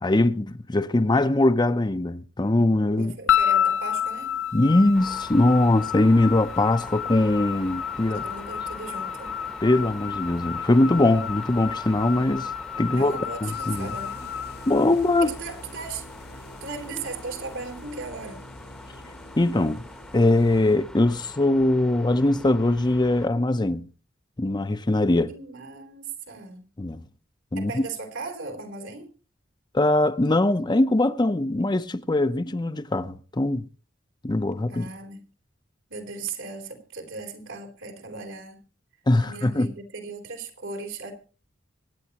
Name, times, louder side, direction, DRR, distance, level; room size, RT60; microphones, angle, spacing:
voice 1, 0.0-3.1 4.5-8.2 9.6-12.5 12.8-13.9 14.7-15.3 19.4-19.8 20.1-23.9 24.4-25.3 26.8-27.0 27.5-27.8 29.7-33.7 34.2-34.9 39.1-39.7, left 2 dB, 20° left, 0.6 m, -21 dB
voice 2, 3.0-4.4 8.1-9.4 12.9-14.2 15.2-16.1 16.6-18.5 25.3-26.6 27.6-29.1 34.7-35.2 35.9-38.6 39.2-41.1, right 4 dB, 85° right, 3.5 m, -37 dB
sound 1, 3.3-15.6, left 9 dB, 80° left, 1.3 m, -30 dB
sound 2, 4.9-23.3, equal, 5° left, 0.9 m, -44 dB
sound 3, 13.5-21.2, left 2 dB, 55° left, 1.0 m, -46 dB
25.5 x 9.7 x 2.9 m
head